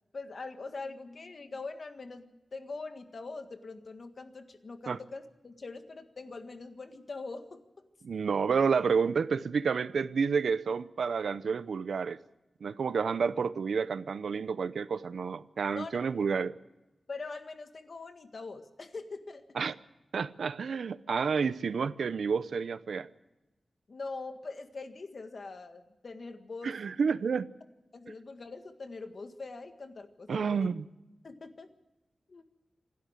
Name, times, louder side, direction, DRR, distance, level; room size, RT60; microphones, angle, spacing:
voice 1, 0.1-7.6 15.7-16.3 17.1-19.7 23.9-26.8 27.9-30.7 31.2-31.7 32.3-32.4, left 3 dB, 45° left, 1.7 m, -43 dB
voice 2, 8.0-12.2 12.6-16.5 19.5-19.7 20.1-23.1 26.6-27.5 30.3-30.9, right 5 dB, 80° right, 0.7 m, -30 dB
27.0 x 12.5 x 8.0 m
wide cardioid pair, 155°, 0 cm